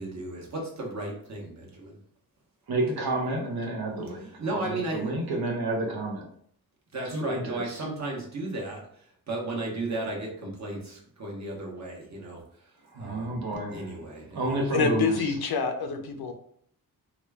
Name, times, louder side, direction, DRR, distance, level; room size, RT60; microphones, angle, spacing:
voice 1, 0.0-2.0 4.2-5.0 6.9-8.8 9.3-12.4 13.0-13.4 13.7-14.6, right 2 dB, 45° right, -2 dB, 1.1 m, -34 dB
voice 2, 2.7-6.2 7.0-7.8 12.9-13.9 14.3-15.3, right 2 dB, 80° right, 0 dB, 0.9 m, -30 dB
voice 3, 14.7-16.3, left 4 dB, 85° left, 5 dB, 0.6 m, -26 dB
3.0 x 2.3 x 3.3 m, 0.63 s
wide cardioid pair, 115°, 37 cm